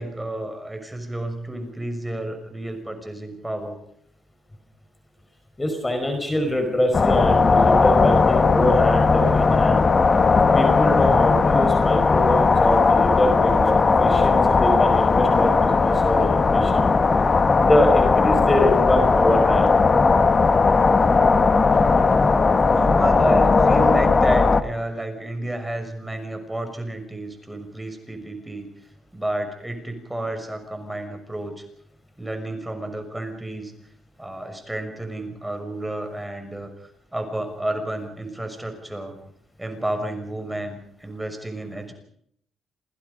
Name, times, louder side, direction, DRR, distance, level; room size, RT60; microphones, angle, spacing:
voice 1, 0.0-3.8 22.7-28.7 29.1-31.6 32.2-33.7 34.2-39.2 39.6-41.9, right 1 dB, 10° right, 6 dB, 6.2 m, -31 dB
voice 2, 5.6-9.9 10.5-16.8 17.6-19.7, left 1 dB, 15° left, 5 dB, 5.2 m, -24 dB
sound 1, 6.9-24.6, left 4 dB, 35° left, 1.7 m, -17 dB
29.5 x 20.5 x 5.3 m, 0.66 s
cardioid pair, 90°, 0 cm